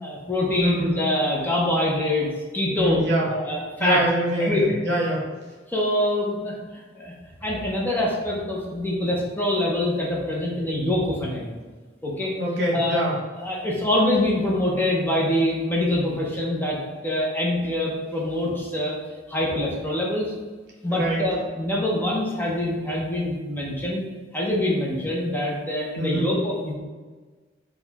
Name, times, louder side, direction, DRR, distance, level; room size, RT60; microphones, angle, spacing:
voice 1, 0.0-2.3 2.5-3.0 3.3-4.0 4.4-4.6 5.7-6.6 7.0-7.1 7.4-11.5 12.0-12.3 12.7-13.0 13.4-16.8 17.0-18.9 19.3-20.3 20.8-24.0 24.3-26.7, left 1 dB, 10° left, -4 dB, 0.7 m, -24 dB
voice 2, 0.6-0.9 2.7-3.3 3.8-5.2 12.4-13.1 20.9-21.2 25.9-26.3, right 1 dB, 60° right, -4 dB, 1.1 m, -24 dB
4.1 x 2.3 x 4.0 m, 1.3 s
head